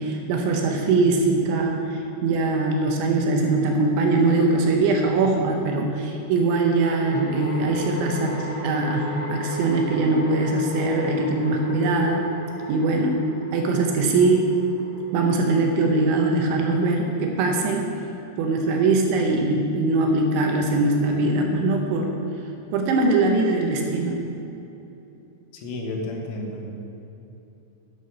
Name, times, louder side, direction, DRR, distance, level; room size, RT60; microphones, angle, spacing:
voice 1, 0.0-12.3 12.7-13.3 13.5-14.5 15.1-17.9 18.4-22.1 22.7-24.2, right 3 dB, 75° right, 2 dB, 3.0 m, -22 dB
sound 1, 3.4-3.5 6.4-17.7, right 1 dB, 20° left, 1.9 m, -38 dB
voice 2, 25.5-26.7, left 2 dB, 75° left, 1 dB, 3.7 m, -31 dB
10.5 x 10.0 x 5.5 m, 2.9 s
omnidirectional pair, 5.8 m